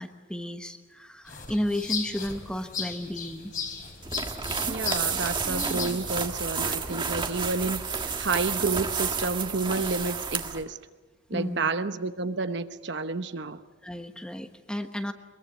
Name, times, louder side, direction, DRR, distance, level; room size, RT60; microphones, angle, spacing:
voice 1, 0.0-3.5 11.3-11.7 13.8-15.1, left 1 dB, 5° left, 1.1 m, -33 dB
sound 1, 1.3-6.3, left 6 dB, 45° left, 3.6 m, -36 dB
sound 2, 4.0-10.6, right 5 dB, 25° right, 1.6 m, -30 dB
voice 2, 4.7-10.8 11.3-13.6, right 3 dB, 65° right, 1.0 m, -30 dB
23.5 x 22.0 x 8.3 m
head